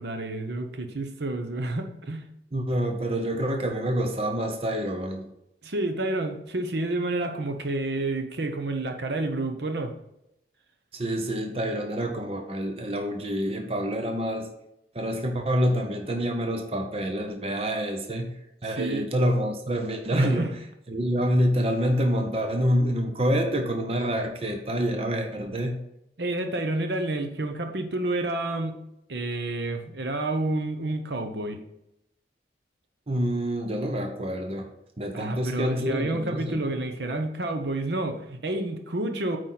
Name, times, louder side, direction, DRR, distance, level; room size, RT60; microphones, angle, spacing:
voice 1, 0.0-2.3 5.6-9.9 18.6-19.1 20.1-20.6 26.2-28.8 29.1-31.6 35.1-39.4, right 2 dB, 65° right, 6 dB, 0.8 m, -29 dB
voice 2, 2.5-5.3 10.9-14.5 14.9-18.3 18.6-20.5 20.9-25.8 33.1-34.7 35.0-36.6, equal, 30° right, 4 dB, 0.8 m, -27 dB
8.5 x 4.8 x 4.0 m, 0.83 s
head